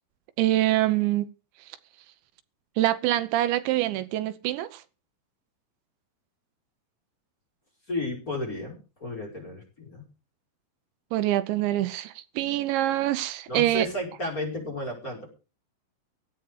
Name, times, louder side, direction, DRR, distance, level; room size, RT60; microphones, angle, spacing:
voice 1, 0.4-1.3 2.8-4.8 11.1-13.9, right 14 dB, 85° right, 3.3 m, -25 dB
voice 2, 7.9-10.0 13.5-15.3, left 1 dB, 20° left, 5.3 m, -33 dB
17.0 x 11.0 x 4.9 m
omnidirectional pair, 5.1 m